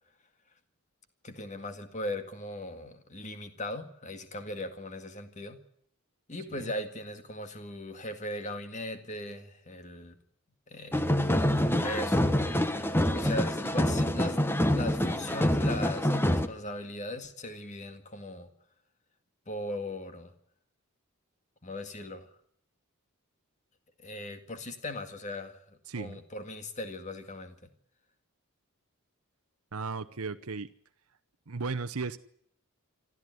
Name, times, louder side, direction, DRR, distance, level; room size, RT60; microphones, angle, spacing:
voice 1, 1.2-5.6 6.3-10.2 10.7-12.4 12.8-18.5 19.5-20.3 21.6-22.3 24.0-27.6, left 1 dB, 30° left, 8 dB, 2.0 m, -39 dB
sound 1, 10.9-16.5, left 1 dB, 10° left, 1.0 m, -26 dB
voice 2, 25.9-26.2 29.7-30.7 31.5-32.2, right 4 dB, 75° right, 10 dB, 0.9 m, -35 dB
26.0 x 13.5 x 9.4 m, 0.67 s
head